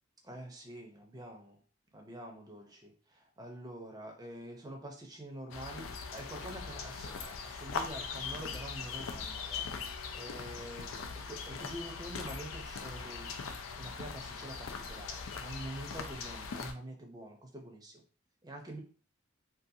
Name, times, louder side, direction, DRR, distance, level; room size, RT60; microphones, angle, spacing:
voice 1, 0.2-1.6 1.9-11.0 11.3-13.3 13.8-18.0 18.4-18.8, right 1 dB, 20° right, 2 dB, 0.5 m, -46 dB
sound 1, 5.5-16.7, left 5 dB, 85° left, 0.4 m, -41 dB
2.7 x 2.4 x 2.6 m, 0.40 s
head